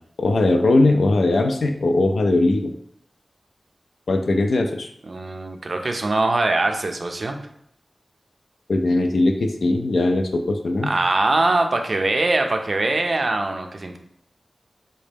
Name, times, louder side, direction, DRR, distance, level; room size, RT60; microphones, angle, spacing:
voice 1, 0.2-2.7 4.1-4.9 8.7-10.9, left 2 dB, 85° left, 4 dB, 0.3 m, -19 dB
voice 2, 5.0-7.4 10.8-14.0, right 2 dB, 55° right, 5 dB, 0.4 m, -22 dB
3.9 x 2.1 x 3.3 m, 0.69 s
wide cardioid pair, 70°, 0 cm